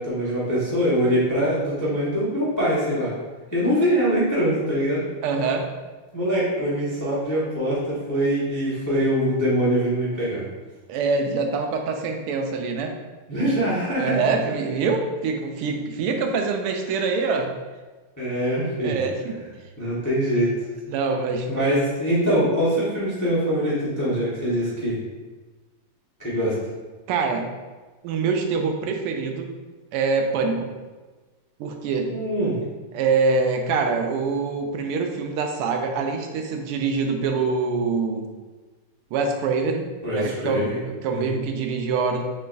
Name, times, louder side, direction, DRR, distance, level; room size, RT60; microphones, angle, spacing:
voice 1, 0.0-3.2 3.5-5.0 6.1-10.4 13.3-14.3 18.2-19.0 19.8-20.5 21.5-24.9 26.2-26.5 32.1-32.6 40.0-41.4, equal, 15° left, -8 dB, 0.6 m, -23 dB
voice 2, 5.2-5.7 10.9-12.9 13.9-17.5 18.8-19.4 20.9-21.5 27.1-27.5 28.0-29.5 29.9-30.7 31.6-32.1 32.9-38.3 39.1-42.2, right 4 dB, 90° right, 3 dB, 1.5 m, -25 dB
6.7 x 3.1 x 2.5 m, 1.3 s
omnidirectional pair, 2.4 m